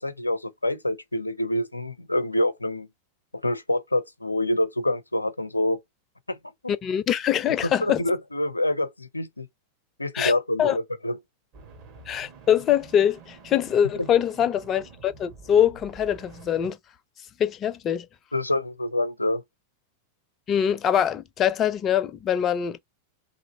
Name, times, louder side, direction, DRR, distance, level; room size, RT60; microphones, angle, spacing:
voice 1, 0.0-2.9 3.4-5.8 6.3-6.4 6.6-6.7 7.6-9.5 10.0-11.2 14.0-14.1 18.3-19.4, left 1 dB, 85° left, 0.5 m, -26 dB
voice 2, 6.8-8.0 10.1-10.8 12.1-16.8 17.4-18.1 20.5-22.8, left 9 dB, 30° left, 0.4 m, -23 dB
sound 1, 11.5-16.7, right 4 dB, 45° right, 1.2 m, -48 dB
3.0 x 2.6 x 4.0 m
figure-of-eight pair, 90°, 0 cm